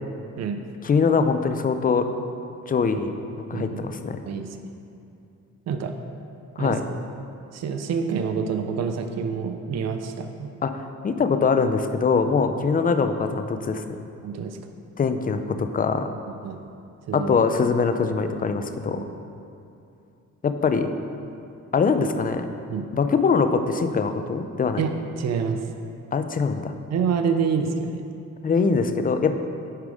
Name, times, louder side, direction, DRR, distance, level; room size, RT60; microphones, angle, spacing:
voice 1, 0.8-2.1 2.7-3.1 3.5-4.2 6.6-6.8 10.6-14.0 15.0-16.1 17.1-19.0 20.4-20.9 21.7-22.5 22.9-24.8 26.1-26.7 28.4-29.3, left 5 dB, 30° left, 8 dB, 0.5 m, -23 dB
voice 2, 7.5-10.5 14.2-14.6 16.3-16.6 17.1-17.4 18.9-19.1 22.7-22.9 24.8-25.6 26.9-28.0, right 6 dB, 60° right, 6 dB, 0.7 m, -27 dB
9.1 x 4.8 x 5.0 m, 2.6 s
cardioid pair, 90°, 30 cm